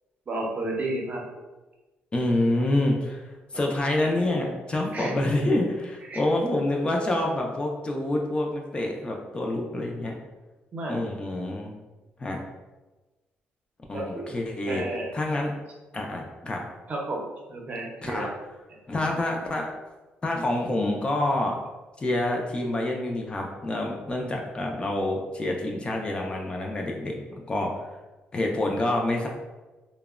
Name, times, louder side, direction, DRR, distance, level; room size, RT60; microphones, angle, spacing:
voice 1, 0.3-1.2 3.5-3.7 4.9-5.1 6.1-6.2 10.7-11.0 13.9-14.3 14.7-15.1 16.9-18.3, right 2 dB, 40° right, -1 dB, 0.6 m, -32 dB
voice 2, 2.1-10.1 10.9-11.7 12.2-12.4 13.9-14.8 15.1-15.5 15.9-16.6 18.0-18.3 18.9-19.7 20.2-21.5 22.0-27.1 27.5-27.9 28.3-29.3, left 1 dB, 25° left, 0 dB, 0.3 m, -27 dB
2.8 x 2.0 x 2.3 m, 1.2 s
cardioid pair, 105°, 4 cm